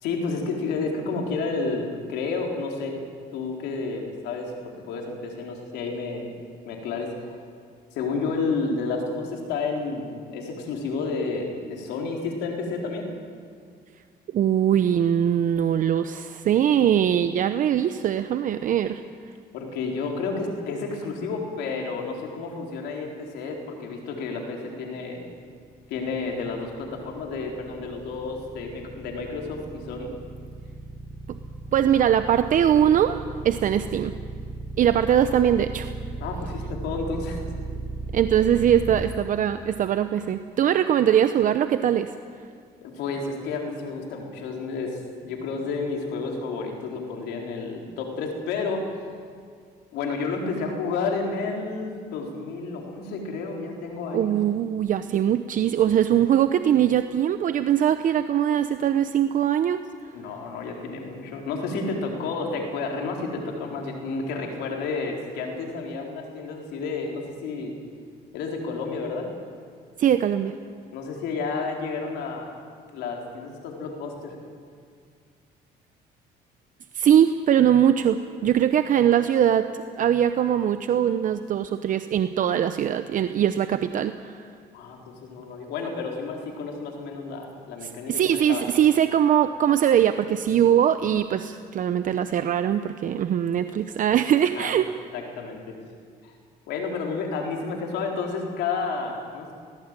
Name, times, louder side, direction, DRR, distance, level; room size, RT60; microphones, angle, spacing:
voice 1, 0.0-3.0 3.3-6.3 6.6-7.4 7.9-13.1 19.5-25.2 25.9-30.1 36.2-37.5 42.8-48.9 49.9-54.3 60.1-67.7 68.3-69.3 70.9-72.5 72.9-74.4 84.7-88.6 94.6-94.7 95.1-95.8 96.2-96.3 96.7-99.5, left 4 dB, 85° left, 1 dB, 4.1 m, -31 dB
voice 2, 14.3-19.0 31.3-31.4 31.7-33.2 33.4-34.1 34.8-35.9 38.1-42.1 54.1-59.8 70.0-70.6 76.9-84.5 87.8-94.9, right 10 dB, 50° right, 10 dB, 0.8 m, -21 dB
sound 1, 25.7-39.0, right 3 dB, 15° right, 1.4 m, -36 dB
19.0 x 17.0 x 9.0 m, 2.1 s
cardioid pair, 110°, 17 cm